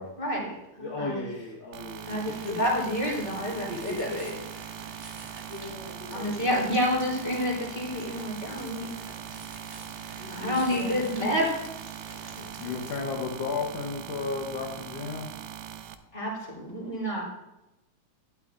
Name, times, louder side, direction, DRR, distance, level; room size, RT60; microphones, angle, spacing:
voice 1, 0.2-1.3 2.1-4.3 6.1-8.9 10.3-11.6 16.1-17.2, equal, 20° left, -4 dB, 3.5 m, -29 dB
voice 2, 0.8-2.6 3.4-4.4 5.5-7.0 8.0-8.1 8.5-8.9 9.3-9.4 10.2-11.0 12.1-12.8, left 2 dB, 50° left, -4 dB, 1.6 m, -39 dB
sound 1, 1.7-15.9, right 10 dB, 85° right, 2.1 m, -41 dB
sound 2, 1.9-13.0, right 2 dB, 35° right, 0.9 m, -48 dB
voice 3, 12.6-15.3, left 4 dB, 65° left, 0 dB, 1.8 m, -33 dB
11.5 x 11.5 x 2.5 m, 0.94 s
omnidirectional pair, 3.6 m